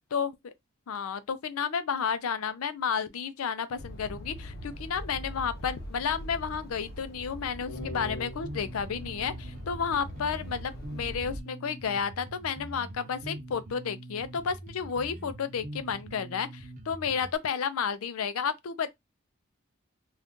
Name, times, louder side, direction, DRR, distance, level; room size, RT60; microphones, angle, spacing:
voice 1, 0.1-0.5 0.9-18.9, left 6 dB, 80° left, 0.5 m, -32 dB
sound 1, 3.8-11.4, equal, 45° left, 0.7 m, -41 dB
Bass guitar, 7.8-17.4, right 1 dB, 40° right, 0.6 m, -43 dB
2.6 x 2.3 x 3.5 m
head